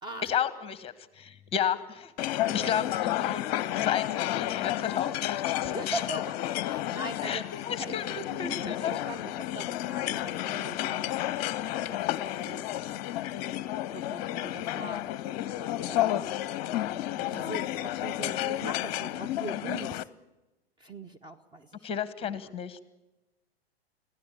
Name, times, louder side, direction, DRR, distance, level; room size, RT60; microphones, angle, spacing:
voice 1, 0.2-3.4 3.7-6.0 7.2-8.9 21.8-22.8, left 8 dB, 15° left, 15 dB, 1.2 m, -33 dB
sound 1, 2.2-20.0, left 13 dB, 35° left, 0.8 m, -31 dB
voice 2, 2.5-2.8 5.6-6.4 6.6-7.4 7.8-8.0 8.4-12.0 12.4-13.1 13.9-15.0 15.3-15.5 15.9-16.4 17.1-20.1 20.8-21.9 22.2-22.3, right 2 dB, 15° right, 7 dB, 0.9 m, -41 dB
26.0 x 16.0 x 8.7 m, 1.0 s
figure-of-eight pair, 100°, 33 cm